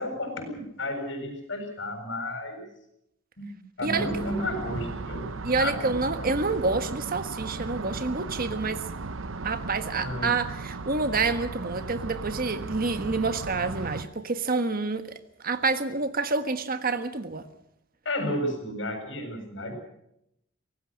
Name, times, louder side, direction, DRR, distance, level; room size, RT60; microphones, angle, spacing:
voice 1, 0.0-2.7 3.4-3.5 3.8-5.3 5.6-6.3 10.0-10.3 18.0-19.8, left 1 dB, 65° left, 5 dB, 7.6 m, -32 dB
sound 1, 3.9-14.0, right 3 dB, 85° right, 0.9 m, -36 dB
voice 2, 5.4-8.8 9.4-15.1 15.4-17.4, right 3 dB, 50° right, 10 dB, 1.5 m, -28 dB
24.5 x 18.5 x 6.4 m, 0.77 s
head